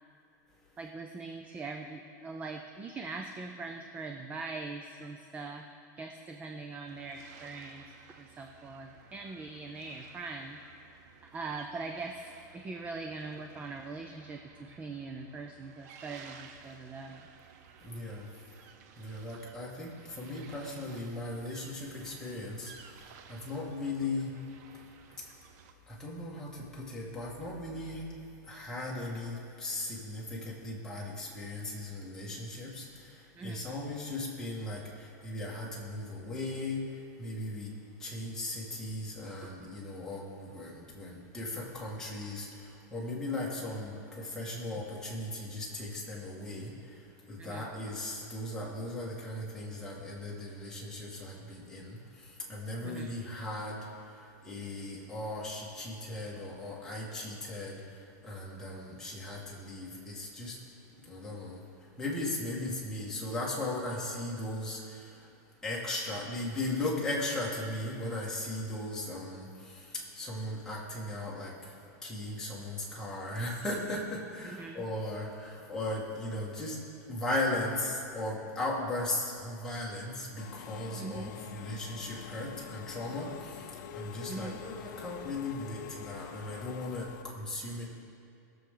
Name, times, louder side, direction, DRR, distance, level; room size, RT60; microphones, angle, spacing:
voice 1, 0.8-5.7 6.0-7.8 8.2-10.6 11.2-12.3 12.5-17.2 33.4-33.8 39.4-39.5 47.4-47.7 52.8-53.1 74.4-74.8 81.0-81.3 84.3-84.6, right 3 dB, 15° right, 4 dB, 0.5 m, -42 dB
sound 1, 6.9-25.7, right 7 dB, 60° right, 0.8 m, -56 dB
voice 2, 17.8-18.3 19.0-22.7 23.3-24.3 25.9-28.1 28.5-36.9 37.2-37.7 38.0-47.0 47.3-53.9 54.4-57.8 58.2-60.6 61.0-61.6 62.0-65.2 65.6-71.5 72.0-76.8 77.1-87.8, left 1 dB, 5° left, -5 dB, 1.9 m, -37 dB
Engine / Mechanisms, 80.4-87.2, left 9 dB, 75° left, 0.6 m, -46 dB
19.0 x 7.0 x 3.8 m, 2.5 s
supercardioid pair, 155°, 10 cm